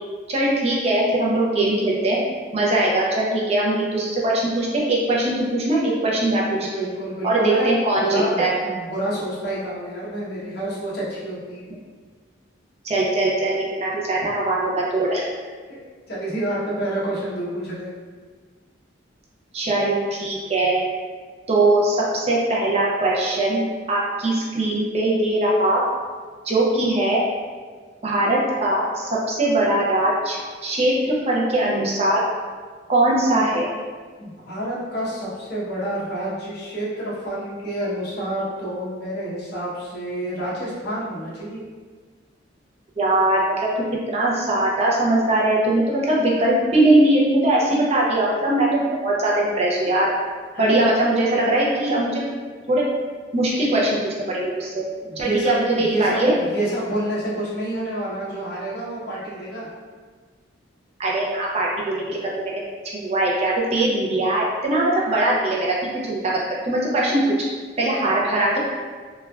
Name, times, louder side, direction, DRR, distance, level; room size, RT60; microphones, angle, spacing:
voice 1, 0.3-2.2 2.5-6.9 7.2-8.5 12.8-15.3 19.5-20.8 21.5-23.6 23.9-25.8 26.4-27.2 28.0-32.2 32.9-33.7 43.0-43.7 44.1-50.1 50.6-52.2 52.7-52.9 53.3-54.8 55.2-56.3 61.0-62.6 63.0-65.8 66.1-66.4 66.7-67.2 67.8-68.6, right 1 dB, 35° right, -4 dB, 0.4 m, -21 dB
voice 2, 6.7-7.7 8.0-11.7 16.1-17.9 33.2-33.3 34.2-41.6 50.5-50.8 55.0-59.7 68.0-68.1, right 1 dB, 55° left, -8 dB, 0.9 m, -28 dB
3.1 x 2.2 x 2.3 m, 1.5 s
head